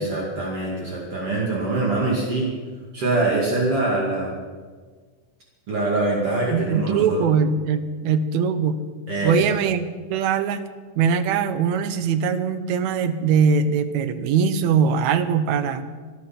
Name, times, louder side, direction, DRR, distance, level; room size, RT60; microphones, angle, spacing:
voice 1, 0.0-2.5 2.9-4.3 5.7-7.2 9.1-9.4, right 2 dB, 55° right, -3 dB, 3.3 m, -24 dB
voice 2, 6.5-8.8 9.2-10.6 11.0-15.8, right 6 dB, 75° right, 11 dB, 2.2 m, -21 dB
25.5 x 8.7 x 5.9 m, 1.5 s
omnidirectional pair, 3.3 m